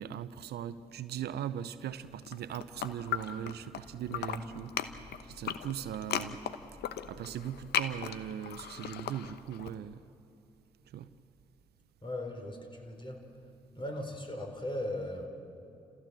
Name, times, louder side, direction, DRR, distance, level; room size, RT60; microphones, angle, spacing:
voice 1, 0.0-6.4 7.1-10.0 10.9-11.1, right 10 dB, 65° right, 14 dB, 0.8 m, -39 dB
sound 1, 2.2-3.8 4.1-9.7, left 10 dB, 70° left, 1.0 m, -37 dB
sound 2, 2.6-10.0, left 1 dB, 55° left, 5.2 m, -58 dB
voice 2, 4.1-4.5 12.0-13.4 13.7-15.3, left 1 dB, 25° left, 4 dB, 4.6 m, -38 dB
30.0 x 15.0 x 7.6 m, 2.7 s
hypercardioid pair, 45°, 18 cm